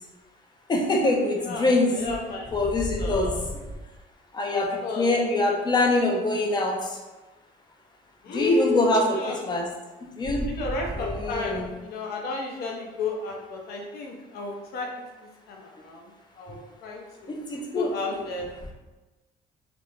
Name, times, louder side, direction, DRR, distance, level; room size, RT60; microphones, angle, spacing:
voice 1, 0.7-1.9 2.5-3.3 4.3-4.7 5.0-6.8 8.3-9.2 9.4-9.7 10.2-10.5 11.0-11.7 17.3-18.2, left 2 dB, 25° left, 1 dB, 0.4 m, -24 dB
voice 2, 1.3-3.3 4.5-5.1 8.2-8.9 9.1-9.4 10.4-15.0 15.5-18.5, left 4 dB, 70° left, 0 dB, 0.6 m, -33 dB
2.5 x 2.1 x 3.1 m, 1.2 s
cardioid pair, 110°, 17 cm